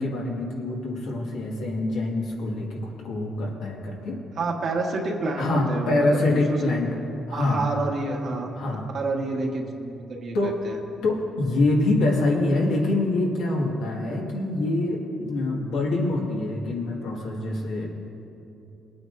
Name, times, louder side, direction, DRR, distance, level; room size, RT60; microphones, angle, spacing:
voice 1, 0.0-4.2 5.4-7.0 7.3-7.7 8.5-8.9 10.3-10.6 11.0-17.9, left 2 dB, 90° left, -2 dB, 1.9 m, -25 dB
voice 2, 4.4-6.7 7.3-8.5 8.9-10.8, right 3 dB, 60° right, 0 dB, 1.6 m, -29 dB
21.0 x 9.2 x 2.7 m, 2.8 s
cardioid pair, 90°, 0 cm